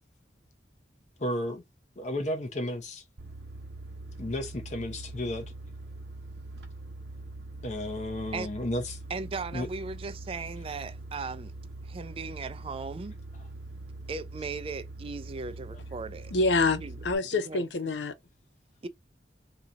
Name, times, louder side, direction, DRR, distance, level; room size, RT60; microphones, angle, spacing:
voice 1, 1.2-1.6 2.0-3.0 4.2-5.5 7.6-9.0 9.5-9.7, left 1 dB, 40° left, 0.7 m, -33 dB
sound 1, 3.2-17.2, right 2 dB, 70° right, 0.8 m, -43 dB
voice 2, 9.1-11.5 11.8-13.1 14.1-16.3 16.8-17.0 17.3-17.6 18.8-18.9, right 4 dB, 30° right, 0.4 m, -37 dB
voice 3, 16.3-18.1, left 3 dB, 85° left, 0.6 m, -26 dB
2.8 x 2.4 x 3.9 m
head